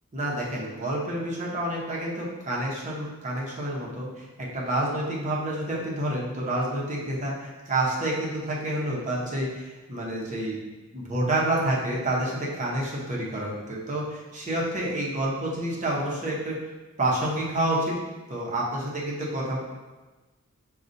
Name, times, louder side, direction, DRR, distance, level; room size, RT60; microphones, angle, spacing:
voice 1, 0.1-10.6 10.9-16.6 17.0-18.0 18.3-19.6, right 1 dB, 35° right, -4 dB, 0.8 m, -28 dB
6.3 x 2.3 x 2.6 m, 1.2 s
head